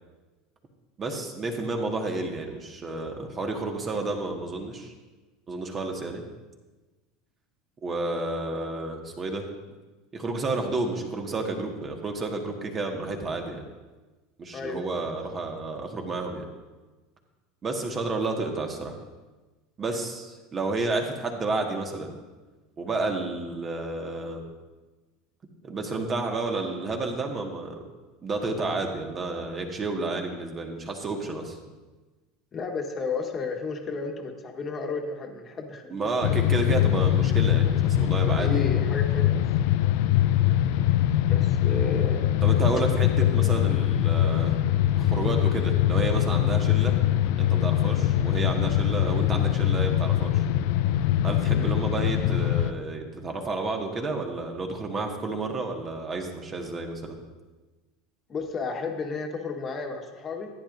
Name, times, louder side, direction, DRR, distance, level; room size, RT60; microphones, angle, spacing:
voice 1, 1.0-4.9 5.5-6.2 7.8-9.5 10.1-13.6 14.4-16.4 17.6-19.0 19.8-22.2 22.8-24.4 25.6-27.8 28.2-31.6 35.9-38.7 42.4-44.7 45.0-47.0 47.4-50.4 51.2-57.2, right 3 dB, 30° right, 3 dB, 1.7 m, -31 dB
voice 2, 14.5-15.1 32.5-35.9 38.4-39.4 39.8-40.0 41.2-42.4 43.2-43.3 51.5-51.7 58.3-60.5, left 4 dB, 30° left, 3 dB, 1.5 m, -33 dB
sound 1, 36.2-52.7, left 12 dB, 60° left, 0.4 m, -23 dB
15.0 x 10.0 x 2.7 m, 1.2 s
figure-of-eight pair, 75°, 0 cm